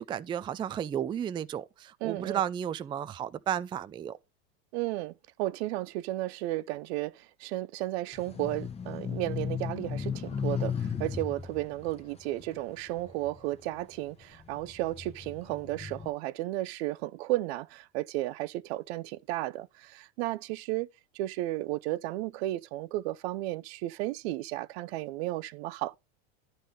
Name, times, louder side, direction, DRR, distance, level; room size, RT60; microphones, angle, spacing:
voice 1, 0.0-4.2, right 9 dB, 15° right, 0.3 m, -33 dB
voice 2, 2.0-2.4 4.7-5.1 5.4-20.9 21.1-26.0, right 17 dB, 65° right, 0.6 m, -33 dB
sound 1, 8.1-13.7 14.2-16.1, left 7 dB, 20° left, 0.9 m, -36 dB
10.0 x 3.9 x 5.3 m
supercardioid pair, 120°, 34 cm